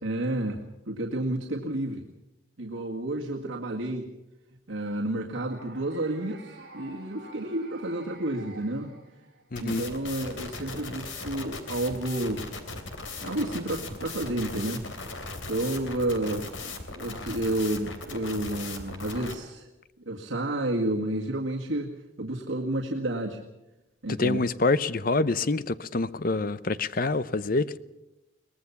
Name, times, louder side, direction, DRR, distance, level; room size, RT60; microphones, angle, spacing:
voice 1, 0.0-0.6 0.9-2.0 2.6-4.1 4.7-9.0 9.6-12.4 13.2-14.8 15.5-19.7 20.1-23.4 24.0-24.4, right 1 dB, 85° right, 1.9 m, -30 dB
sound 1, 5.5-9.6, right 2 dB, 50° right, 6.3 m, -49 dB
voice 2, 9.5-9.9 24.2-27.8, left 3 dB, 45° left, 0.7 m, -26 dB
sound 2, 9.6-19.3, left 3 dB, 75° left, 3.1 m, -38 dB
22.5 x 19.0 x 7.1 m
head